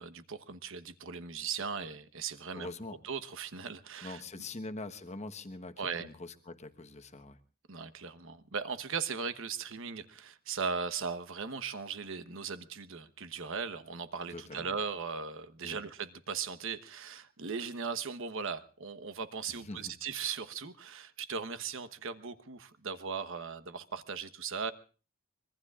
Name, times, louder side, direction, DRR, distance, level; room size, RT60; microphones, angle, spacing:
voice 1, 0.0-2.7 3.0-4.2 5.8-6.1 7.7-24.7, right 5 dB, 65° right, 12 dB, 1.1 m, -38 dB
voice 2, 2.5-3.0 4.0-7.4 14.3-14.7 15.6-15.8 19.5-19.9, left 2 dB, 30° left, 8 dB, 1.2 m, -44 dB
25.0 x 22.0 x 2.4 m, 0.38 s
head